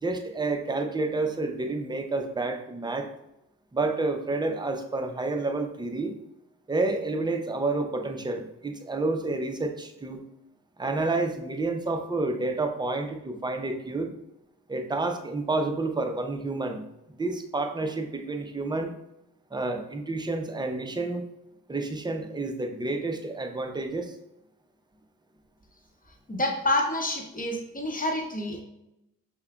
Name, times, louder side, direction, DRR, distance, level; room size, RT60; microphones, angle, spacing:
voice 1, 0.0-3.1 3.7-6.1 6.7-10.2 10.8-14.1 14.7-16.8 17.1-18.9 19.5-21.2 21.7-24.1, right 3 dB, 10° right, 5 dB, 0.5 m, -29 dB
voice 2, 26.3-28.6, left 1 dB, 25° left, 2 dB, 0.9 m, -28 dB
5.4 x 2.2 x 2.3 m, 0.85 s
supercardioid pair, 45°, 36 cm